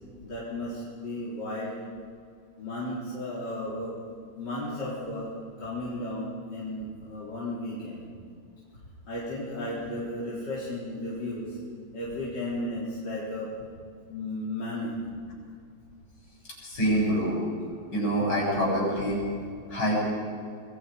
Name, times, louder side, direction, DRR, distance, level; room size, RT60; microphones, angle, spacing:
voice 1, 0.2-1.8 2.6-3.9 4.4-5.3 5.6-8.0 9.1-11.6 11.9-13.5 14.1-14.9, left 1 dB, 55° left, -8 dB, 4.7 m, -34 dB
voice 2, 16.6-17.4 17.9-19.2 19.7-20.0, right 1 dB, 70° left, -3 dB, 8.2 m, -25 dB
26.5 x 21.0 x 5.3 m, 2.2 s
omnidirectional pair, 2.3 m